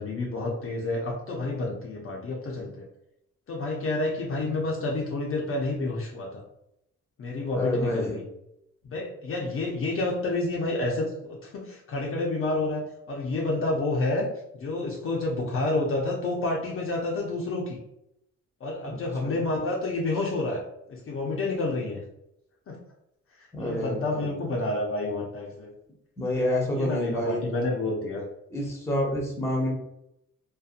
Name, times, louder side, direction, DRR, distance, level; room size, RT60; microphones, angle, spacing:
voice 1, 0.0-2.9 3.5-6.4 7.2-8.2 8.8-14.3 14.5-17.8 18.6-20.6 20.9-22.0 22.7-22.8 23.6-25.7 26.7-28.2, left 2 dB, 45° left, -2 dB, 0.6 m, -29 dB
voice 2, 7.5-8.2 18.8-19.0 19.2-19.3 23.5-24.3 26.2-27.5 28.5-29.7, left 1 dB, 10° left, -1 dB, 0.8 m, -28 dB
2.6 x 2.2 x 2.4 m, 0.80 s
cardioid pair, 90°, 30 cm